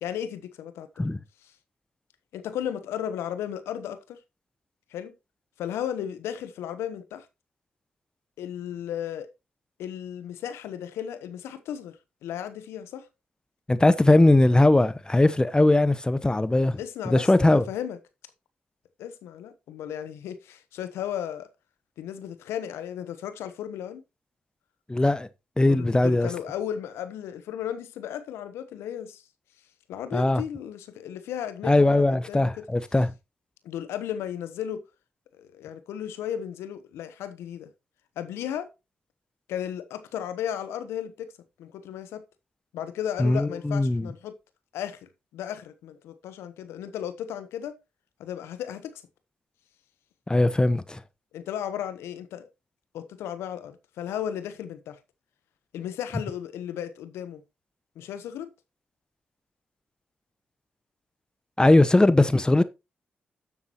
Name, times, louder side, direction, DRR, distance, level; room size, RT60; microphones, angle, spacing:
voice 1, 0.0-1.0 2.3-4.2 4.9-5.1 5.6-7.3 8.4-9.3 9.8-12.0 12.2-13.1 16.8-18.0 19.0-21.5 22.0-24.0 25.7-29.2 29.9-32.5 33.6-34.8 35.4-37.7 38.2-38.7 39.5-41.3 41.6-42.2 42.7-44.3 44.7-47.7 48.2-48.9 51.3-52.5 52.9-55.0 55.7-57.4 58.0-58.5, left 10 dB, 85° left, 1.0 m, -35 dB
voice 2, 13.7-16.8 17.0-17.6 24.9-25.3 25.6-26.3 30.1-30.4 31.6-33.1 43.2-44.1 50.3-51.0 61.6-62.6, left 2 dB, 20° left, 0.8 m, -20 dB
12.0 x 7.3 x 2.9 m
supercardioid pair, 45°, 4 cm